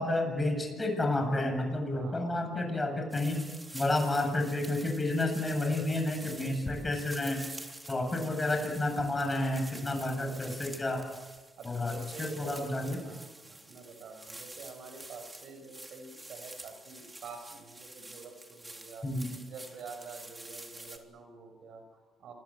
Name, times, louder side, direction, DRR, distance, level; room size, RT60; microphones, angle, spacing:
voice 1, 0.0-3.4 3.7-7.4 7.9-11.1 11.6-13.0 19.0-19.3, left 2 dB, 20° left, 4 dB, 7.9 m, -30 dB
voice 2, 1.9-3.1 10.0-10.8 11.6-19.1 19.5-22.3, right 4 dB, 70° right, 7 dB, 6.0 m, -48 dB
sound 1, 3.1-21.0, right 2 dB, 15° right, 3.4 m, -48 dB
27.5 x 22.0 x 8.0 m, 1.3 s
cardioid pair, 90°, 0 cm